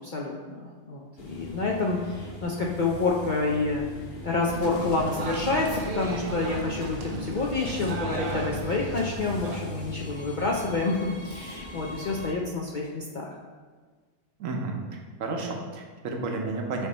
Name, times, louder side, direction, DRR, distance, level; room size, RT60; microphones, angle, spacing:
voice 1, 0.0-3.8 4.2-13.3, left 3 dB, 60° left, -2 dB, 0.5 m, -28 dB
sound 1, 1.2-12.3, equal, 25° left, 0.7 m, -40 dB
sound 2, 4.5-9.6, right 2 dB, 60° right, 0.4 m, -35 dB
voice 2, 14.4-16.9, right 3 dB, 75° right, 2 dB, 1.1 m, -32 dB
8.0 x 2.9 x 4.1 m, 1.5 s
omnidirectional pair, 1.4 m